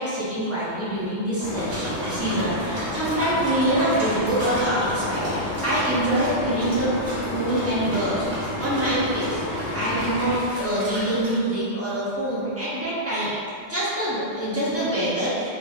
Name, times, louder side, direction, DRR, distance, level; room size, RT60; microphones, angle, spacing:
voice 1, 0.0-7.0 7.3-8.3 8.6-9.4 9.7-13.3 13.7-15.5, right 1 dB, 20° right, -10 dB, 0.4 m, -25 dB
sound 1, 1.4-10.4, left 1 dB, 90° left, 0.9 m, -30 dB
sound 2, 1.6-11.3, equal, 85° right, 1.2 m, -36 dB
2.5 x 2.5 x 2.3 m, 2.3 s
omnidirectional pair, 1.2 m